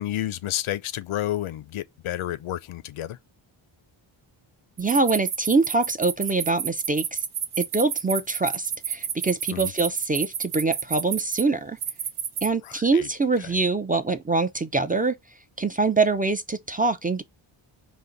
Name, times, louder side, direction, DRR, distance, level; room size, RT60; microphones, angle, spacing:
voice 1, 0.0-3.2 9.5-9.7 12.6-13.1 13.4-13.5, left 13 dB, 80° left, 0.6 m, -30 dB
voice 2, 4.8-7.2 7.6-11.8 12.4-15.2 15.6-17.2, right 3 dB, 20° right, 0.4 m, -24 dB
sound 1, 4.8-11.4 11.8-12.5, right 8 dB, 90° right, 1.2 m, -29 dB
5.2 x 2.5 x 3.8 m
wide cardioid pair, 150°, 48 cm